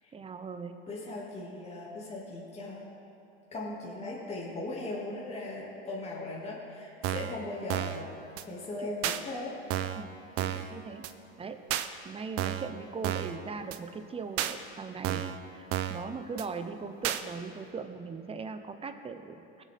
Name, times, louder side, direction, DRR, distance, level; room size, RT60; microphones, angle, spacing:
voice 1, 0.1-0.8 8.8-8.9 9.9-11.0 11.4-11.6 12.0-19.6, right 5 dB, 20° right, 8 dB, 0.9 m, -40 dB
voice 2, 0.9-2.8 3.5-8.1 8.4-9.5 10.5-10.7, left 2 dB, 20° left, -5 dB, 2.4 m, -38 dB
sound 1, 7.0-7.4 7.7-8.0 8.4-8.5 9.0-9.2 9.7-10.0 10.4-10.7 11.0-11.1 11.7-11.9 12.4-12.7 13.0-13.4 13.7-13.8 14.4-14.5 15.0-15.4 15.7-16.0 16.4-16.5 17.0-17.2, right 12 dB, 45° right, 0.7 m, -31 dB
20.0 x 7.7 x 3.7 m, 3.0 s
hypercardioid pair, 100°, 32 cm